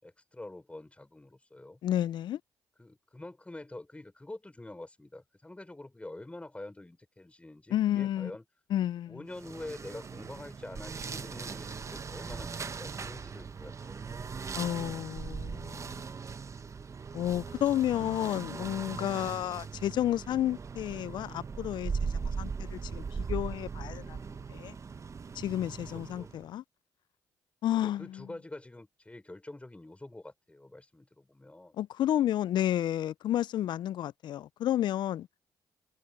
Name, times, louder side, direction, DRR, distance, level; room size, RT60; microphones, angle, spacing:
voice 1, 0.0-1.8 2.8-8.4 9.1-14.6 25.9-26.3 27.7-31.8, left 2 dB, 15° left, 5.6 m, -46 dB
voice 2, 1.8-2.4 7.7-8.3 8.7-9.2 14.5-16.0 17.1-24.2 24.5-24.7 25.4-26.6 27.6-28.1 31.8-35.3, left 12 dB, 70° left, 0.4 m, -31 dB
sound 1, 9.3-26.5, right 5 dB, 40° right, 0.9 m, -39 dB
sound 2, 9.8-10.7 12.9-13.5 15.6-16.4 18.5-19.4 21.2-22.2 24.0-24.8, right 2 dB, 15° right, 7.2 m, -60 dB
supercardioid pair, 65°, 8 cm